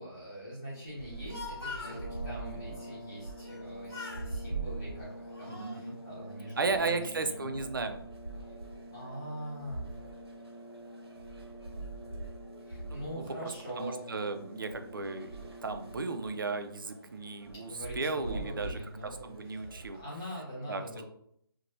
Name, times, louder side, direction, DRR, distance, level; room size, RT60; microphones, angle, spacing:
voice 1, 0.0-7.5 8.9-9.9 12.6-14.1 17.5-21.0, equal, 5° left, -13 dB, 0.6 m, -43 dB
Speech, 1.0-2.0 3.4-3.6 3.9-4.3 5.0-5.8, left 4 dB, 70° left, 1.1 m, -43 dB
sound 1, 1.0-20.0, right 3 dB, 80° right, 0.8 m, -45 dB
sound 2, 1.7-16.9, equal, 55° left, 0.4 m, -48 dB
voice 2, 5.5-6.0 6.6-8.0 12.9-13.2 13.8-18.8 19.2-20.0 20.7-21.0, right 3 dB, 55° right, 7 dB, 0.4 m, -35 dB
2.6 x 2.1 x 2.9 m, 0.68 s
hypercardioid pair, 180°, 13 cm